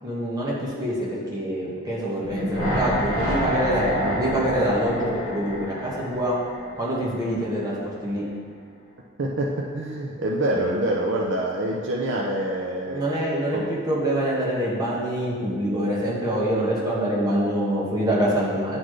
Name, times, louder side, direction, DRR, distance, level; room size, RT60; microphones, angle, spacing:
voice 1, 0.0-6.3 6.8-8.2 12.9-18.8, right 1 dB, 20° right, -6 dB, 1.3 m, -25 dB
sound 1, 2.2-7.4 7.7-7.8, equal, 80° right, 1.6 m, -28 dB
voice 2, 9.2-13.0 13.5-13.7, right 1 dB, 60° right, -2 dB, 0.5 m, -26 dB
10.5 x 4.1 x 3.2 m, 2.1 s
head